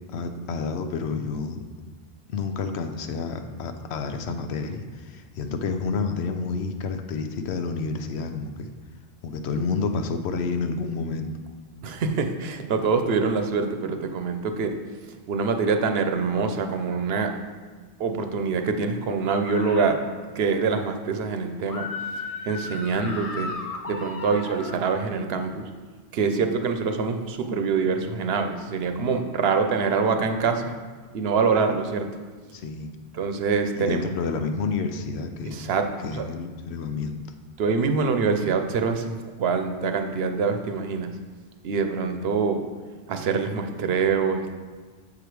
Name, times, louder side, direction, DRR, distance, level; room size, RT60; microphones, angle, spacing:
voice 1, 0.1-1.6 2.3-8.7 9.2-11.3 32.5-32.9 33.8-35.6 36.0-37.2, left 4 dB, 90° left, 7 dB, 0.9 m, -29 dB
voice 2, 11.8-14.8 15.3-17.4 18.0-20.0 20.3-22.1 22.4-23.5 23.9-25.7 26.1-30.8 31.1-32.1 33.1-34.2 35.5-36.3 37.6-41.1 41.6-42.6 43.1-44.5, right 5 dB, 75° right, 6 dB, 0.9 m, -25 dB
sound 1, 19.4-19.9 21.7-24.8, left 3 dB, 40° left, 0.6 m, -35 dB
7.0 x 4.9 x 4.6 m, 1.4 s
omnidirectional pair, 1.1 m